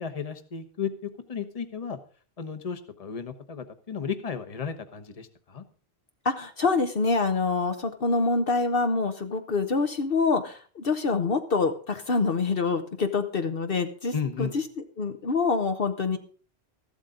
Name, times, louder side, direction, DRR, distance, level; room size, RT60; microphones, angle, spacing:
voice 1, 0.0-2.0 2.4-5.6 14.1-14.5, left 6 dB, 35° left, 9 dB, 1.1 m, -34 dB
voice 2, 6.2-14.6 15.0-16.2, left 4 dB, 60° left, 6 dB, 1.1 m, -26 dB
14.0 x 12.5 x 3.8 m, 0.40 s
omnidirectional pair, 1.1 m